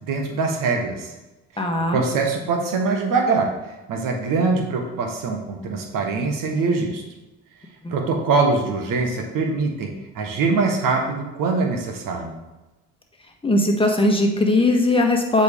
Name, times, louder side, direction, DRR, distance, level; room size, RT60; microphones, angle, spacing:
voice 1, 0.0-1.1 1.5-1.7 1.9-3.5 3.9-7.0 7.9-12.4, right 4 dB, 60° right, 3 dB, 1.5 m, -23 dB
voice 2, 1.6-2.0 7.8-7.9 13.4-15.4, left 2 dB, 15° left, 1 dB, 1.6 m, -19 dB
7.8 x 4.7 x 3.7 m, 1.1 s
hypercardioid pair, 65°, 38 cm